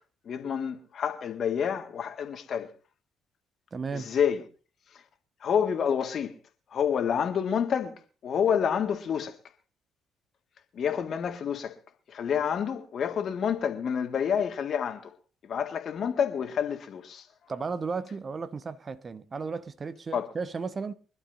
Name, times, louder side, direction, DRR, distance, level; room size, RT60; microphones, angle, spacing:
voice 1, 0.3-2.7 3.9-4.4 5.4-6.3 6.7-7.9 8.2-9.4 10.7-11.8 12.1-15.1 15.4-17.3 20.1-20.3, left 7 dB, 55° left, 1.9 m, -28 dB
voice 2, 3.7-4.1 17.5-20.9, right 4 dB, 40° right, 1.0 m, -34 dB
24.5 x 12.0 x 2.7 m
hypercardioid pair, 45°, 0 cm